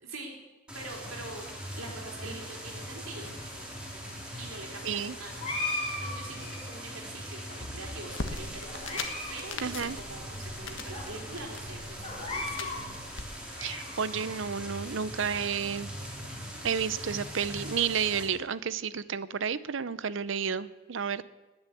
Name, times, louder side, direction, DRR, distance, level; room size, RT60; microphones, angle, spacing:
voice 1, 0.0-0.4 0.7-1.5 1.8-3.3 4.4-9.0 9.3-12.8, right 2 dB, 80° right, 0 dB, 3.9 m, -44 dB
sound 1, 0.7-18.2, equal, 5° right, 2.7 m, -41 dB
voice 2, 4.8-5.1 9.6-10.0 13.6-15.9 16.6-21.2, right 7 dB, 65° right, 17 dB, 0.6 m, -31 dB
sound 2, 5.4-6.8 7.5-8.2 8.7-9.4 9.6-9.7 10.4-10.5 10.9-11.0 12.0-12.8 13.3-14.3, left 2 dB, 30° left, 3.0 m, -37 dB
sound 3, 8.1-13.2, left 3 dB, 65° left, 1.4 m, -41 dB
19.5 x 7.1 x 8.4 m, 1.2 s
head